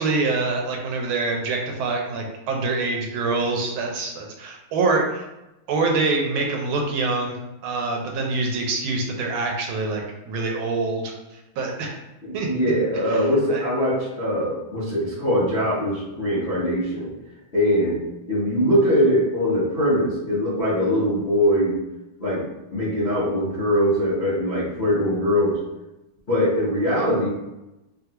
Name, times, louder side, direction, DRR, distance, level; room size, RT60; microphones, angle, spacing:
voice 1, 0.0-5.3 5.7-7.4 7.6-11.1 11.6-11.9 12.3-12.5 13.5-13.6, right 3 dB, 80° right, 1 dB, 1.4 m, -25 dB
voice 2, 12.2-17.1 17.5-21.7 22.2-22.4 22.7-25.6 26.3-27.3, equal, 50° left, -10 dB, 0.7 m, -22 dB
3.3 x 2.3 x 2.8 m, 0.98 s
omnidirectional pair, 2.3 m